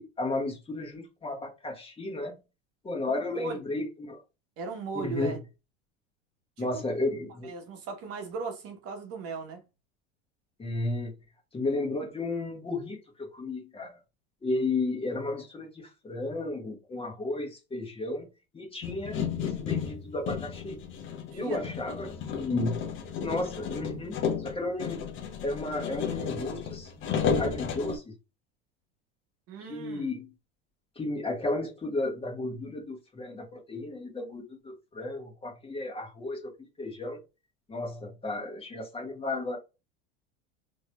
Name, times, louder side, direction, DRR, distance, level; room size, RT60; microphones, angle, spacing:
voice 1, 0.0-2.3 2.8-4.2 4.9-5.4 6.6-7.5 10.6-11.1 11.5-13.9 14.4-18.3 18.5-20.8 21.3-22.8 23.2-24.2 24.4-25.1 25.4-28.0 29.6-30.3 31.0-36.4 36.8-37.2 37.7-39.6, left 2 dB, 15° left, 1.5 m, -33 dB
voice 2, 4.6-5.4 6.6-6.8 7.4-9.6 21.3-22.0 29.5-30.1, right 4 dB, 50° right, 1.1 m, -37 dB
sound 1, 18.8-28.0, left 6 dB, 40° left, 0.8 m, -33 dB
3.8 x 3.0 x 2.3 m
supercardioid pair, 110°, 31 cm